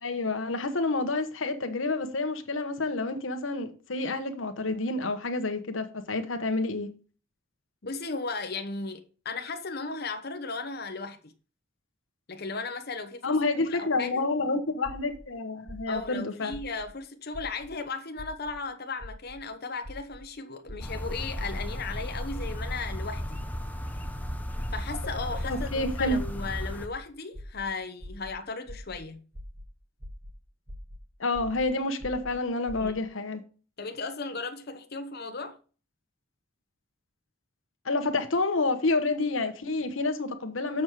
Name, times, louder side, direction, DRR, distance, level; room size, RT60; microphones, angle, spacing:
voice 1, 0.0-6.9 13.2-16.5 25.5-26.2 31.2-33.4 37.8-40.8, left 3 dB, 90° left, 1.1 m, -29 dB
voice 2, 7.8-11.3 12.3-13.4 13.7-14.2 15.9-23.4 24.7-29.2 32.8-33.0 33.8-35.6, left 4 dB, 55° left, 1.0 m, -36 dB
sound 1, 14.8-15.2 15.7-16.0 16.5-16.9 17.3-17.7 18.2-18.5 19.0-19.3 19.8-20.2 20.7-21.0 21.3-21.6 22.0-22.3 22.7-23.0 23.3-23.6 24.0-24.3 24.7-25.0 25.3-25.6 26.0-26.3 26.7-27.0 27.3-27.6 28.0-28.3 28.7-29.0 29.3-29.6 30.0-30.3 30.7-31.0 31.3-31.6 32.0-32.3 32.7-32.9, equal, 20° right, 1.0 m, -43 dB
sound 2, 20.8-26.9, equal, 10° left, 0.7 m, -34 dB
7.2 x 6.2 x 4.8 m
head